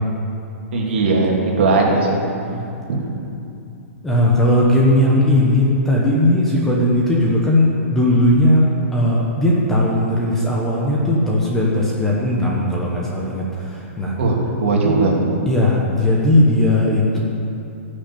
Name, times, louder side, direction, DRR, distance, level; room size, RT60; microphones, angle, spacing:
voice 1, 0.7-2.2 2.9-3.0 14.2-15.1, right 3 dB, 50° right, -2 dB, 2.8 m, -18 dB
voice 2, 4.0-14.1 15.5-17.2, left 1 dB, 5° left, -4 dB, 1.1 m, -17 dB
15.5 x 6.5 x 8.6 m, 2.6 s
hypercardioid pair, 175°, 8 cm